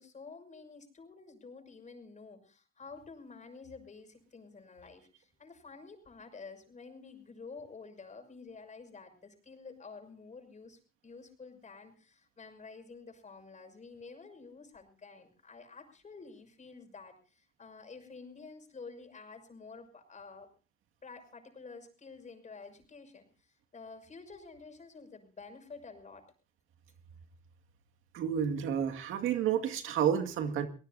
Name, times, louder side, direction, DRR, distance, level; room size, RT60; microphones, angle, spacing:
voice 1, 0.0-20.5 21.0-23.3 23.7-26.3, left 4 dB, 35° left, 6 dB, 6.2 m, -50 dB
voice 2, 28.1-30.7, right 8 dB, 90° right, 7 dB, 2.2 m, -30 dB
25.0 x 19.0 x 2.7 m, 0.36 s
cardioid pair, 90°, 20 cm